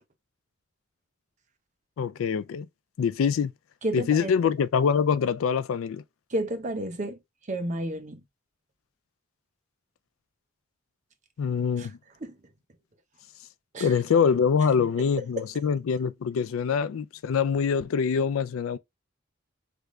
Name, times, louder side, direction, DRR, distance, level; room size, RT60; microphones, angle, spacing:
voice 1, 2.0-2.7 3.0-3.5 3.9-6.0 11.4-12.0 13.8-18.8, left 6 dB, 80° left, 0.3 m, -24 dB
voice 2, 3.8-4.3 6.3-7.2 7.5-8.2 11.8-11.9 12.2-12.4 13.7-13.9 15.0-15.1, right 1 dB, 35° right, 0.6 m, -31 dB
3.5 x 2.5 x 3.0 m
head